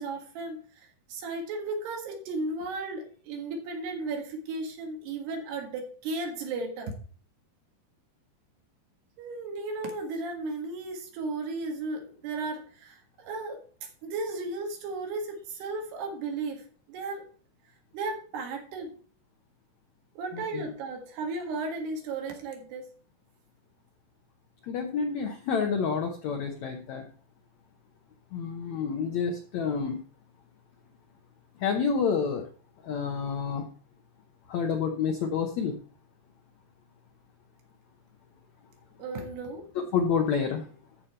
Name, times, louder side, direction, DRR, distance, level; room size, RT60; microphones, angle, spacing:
voice 1, 0.0-7.0 9.2-17.3 17.9-19.0 20.2-22.9 39.0-39.7, right 3 dB, 80° right, 3 dB, 3.8 m, -35 dB
voice 2, 20.3-20.7 24.6-27.0 28.3-30.0 31.6-32.4 32.8-33.6 34.5-35.8 39.9-40.6, left 6 dB, 90° left, 3 dB, 1.5 m, -28 dB
13.5 x 5.2 x 4.2 m, 0.41 s
omnidirectional pair, 4.6 m